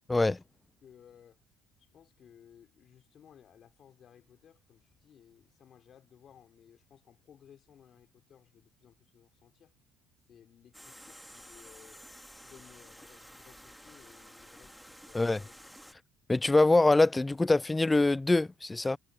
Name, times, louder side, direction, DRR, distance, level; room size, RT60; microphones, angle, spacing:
voice 1, 0.8-1.4 1.8-9.7 10.3-12.0 12.4-15.5 15.8-16.0, left 9 dB, 50° left, 3.8 m, -59 dB
sound 1, 10.7-15.9, equal, ahead, 2.1 m, -52 dB
voice 2, 16.3-19.0, left 2 dB, 15° left, 0.4 m, -24 dB
hypercardioid pair, 65°, 0 cm